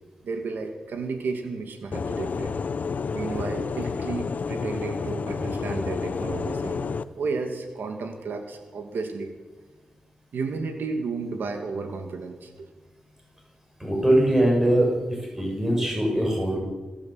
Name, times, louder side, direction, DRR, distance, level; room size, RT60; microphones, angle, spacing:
voice 1, 0.2-2.5 3.1-6.8 7.2-9.3 10.3-12.7 15.8-15.9, right 4 dB, 80° right, 5 dB, 2.3 m, -32 dB
sound 1, 1.9-7.0, left 5 dB, 50° left, 0.8 m, -30 dB
voice 2, 13.8-14.9 15.3-16.6, right 1 dB, 15° right, -1 dB, 7.0 m, -21 dB
28.0 x 14.0 x 7.9 m, 1.2 s
wide cardioid pair, 155°, 3 cm